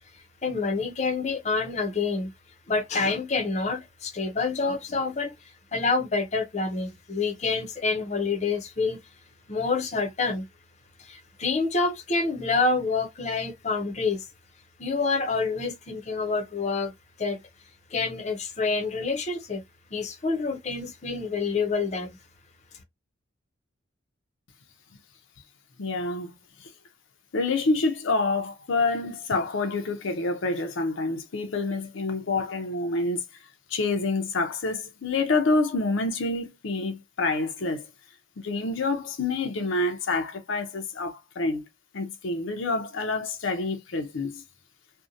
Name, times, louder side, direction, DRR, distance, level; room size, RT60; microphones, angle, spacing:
voice 1, 0.4-2.3 2.7-5.3 5.7-9.0 9.5-10.5 11.0-14.3 14.8-16.9 17.2-17.4 17.9-19.6 19.9-22.1, left 4 dB, 35° left, 0.5 m, -27 dB
voice 2, 25.8-26.3 27.3-33.2 33.7-37.8 38.4-41.6 41.9-44.4, left 3 dB, 85° left, 0.6 m, -27 dB
2.7 x 2.1 x 2.5 m
head